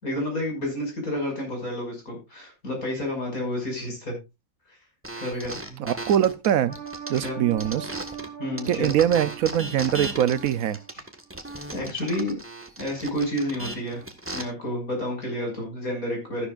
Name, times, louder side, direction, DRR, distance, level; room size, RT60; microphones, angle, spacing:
voice 1, 0.0-4.2 4.7-4.8 5.2-5.8 7.2-7.4 8.4-8.9 11.7-12.4 12.8-14.0 14.3-16.5, left 1 dB, 85° left, 6.5 m, -30 dB
sound 1, 5.0-8.3 8.6-14.4, right 1 dB, 10° right, 1.4 m, -36 dB
voice 2, 5.8-6.8 7.1-7.9 8.7-10.8, right 10 dB, 80° right, 1.2 m, -23 dB
sound 2, 6.7-10.9 11.3-11.4, right 6 dB, 65° left, 3.8 m, -41 dB
13.0 x 11.5 x 2.5 m
omnidirectional pair, 1.5 m